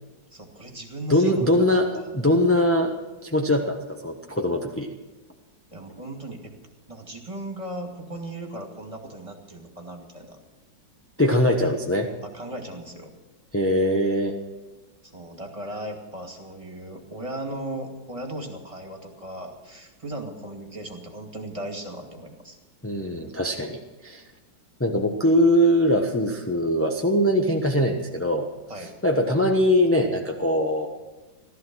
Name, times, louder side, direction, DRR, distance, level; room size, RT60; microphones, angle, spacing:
voice 1, 0.3-2.1 5.7-6.5 6.9-10.4 12.2-13.1 15.0-22.6 28.7-28.9, right 1 dB, 15° right, 2 dB, 2.2 m, -37 dB
voice 2, 1.1-2.9 3.2-4.9 11.2-12.1 13.5-14.4 22.8-24.2 24.8-28.5 29.0-30.9, left 1 dB, 10° left, 1 dB, 0.6 m, -22 dB
15.5 x 13.5 x 6.2 m, 1.2 s
omnidirectional pair, 2.0 m